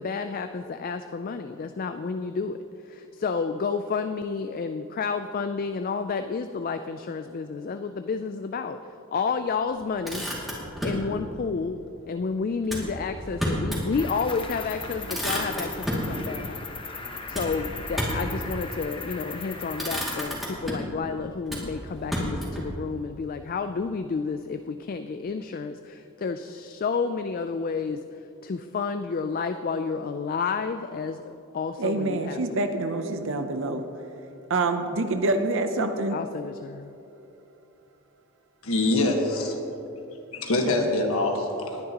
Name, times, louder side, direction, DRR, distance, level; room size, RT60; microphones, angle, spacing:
voice 1, 0.0-10.3 10.8-11.8 12.1-16.6 17.1-32.7 36.1-36.9, left 5 dB, 40° left, 0.3 m, -30 dB
Motor vehicle (road), 9.8-11.1 12.6-13.9 14.3-14.4 14.7-16.1 17.3-18.3 19.2-19.4 19.7-21.0 21.5-22.7, equal, ahead, 2.3 m, -31 dB
Cricket, 13.9-20.3, left 4 dB, 25° left, 0.9 m, -38 dB
voice 2, 31.8-33.8 34.5-36.2, right 2 dB, 60° right, 0.6 m, -26 dB
voice 3, 38.6-39.6 40.3-41.8, left 2 dB, 70° left, 1.5 m, -24 dB
19.5 x 10.5 x 2.9 m
head